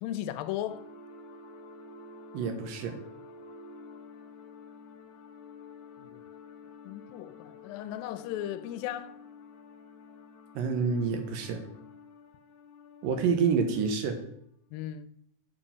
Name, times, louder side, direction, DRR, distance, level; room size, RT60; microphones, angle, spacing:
voice 1, 0.0-0.8 6.0-6.2 6.9-9.2 14.7-15.1, left 12 dB, 85° left, 2.3 m, -36 dB
sound 1, 0.7-14.3, left 4 dB, 65° left, 2.0 m, -50 dB
voice 2, 2.3-3.0 10.6-11.6 13.0-14.2, right 5 dB, 80° right, 2.6 m, -28 dB
7.4 x 5.3 x 5.5 m
omnidirectional pair, 4.0 m